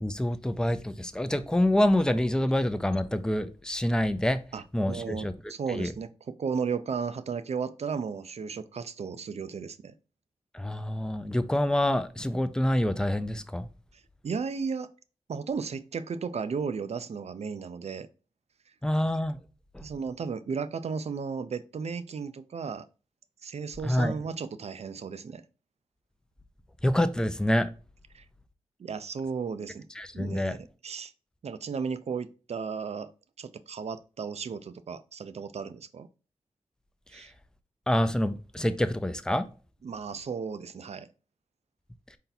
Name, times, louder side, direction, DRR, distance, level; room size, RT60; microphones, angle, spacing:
voice 1, 0.0-4.4 4.7-5.3 5.7-5.9 10.5-13.7 18.8-19.4 23.8-24.2 26.8-27.7 30.0-30.5 37.9-39.5, left 1 dB, 5° left, 0.5 m, -26 dB
voice 2, 4.5-9.9 14.2-14.9 15.3-18.1 19.8-22.9 23.4-25.4 28.1-28.2 28.8-29.9 30.1-31.1 31.4-33.1 33.4-36.1 37.1-37.3 39.8-41.1, right 5 dB, 60° right, 0.4 m, -34 dB
4.4 x 2.8 x 4.0 m
cardioid pair, 50°, 12 cm